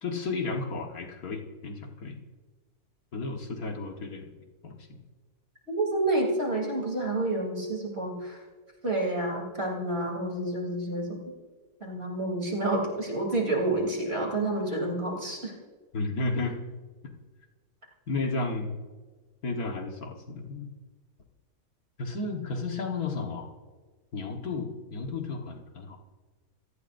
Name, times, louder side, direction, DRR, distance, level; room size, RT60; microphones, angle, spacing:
voice 1, 0.0-2.2 3.1-4.3 4.6-4.8 15.9-16.6 18.1-18.8 19.4-20.7 22.0-23.5 24.1-26.0, left 3 dB, 70° left, 2 dB, 2.0 m, -33 dB
voice 2, 5.7-8.4 8.8-11.2 11.8-15.5, right 2 dB, 40° right, 0 dB, 3.5 m, -29 dB
26.0 x 17.5 x 2.7 m, 1.4 s
omnidirectional pair, 1.6 m